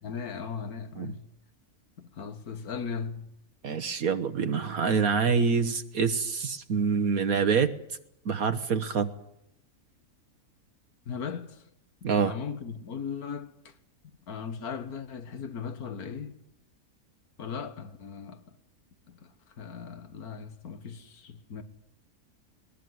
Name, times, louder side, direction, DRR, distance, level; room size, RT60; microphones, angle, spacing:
voice 1, 0.0-1.3 2.0-3.3 11.1-11.6 12.0-13.7 14.3-16.4 17.4-18.4 19.1-21.6, left 6 dB, 80° left, 2.0 m, -38 dB
voice 2, 3.6-7.7 8.2-9.1 12.0-12.3, right 5 dB, 70° right, 1.6 m, -26 dB
21.5 x 20.5 x 9.5 m
omnidirectional pair, 1.6 m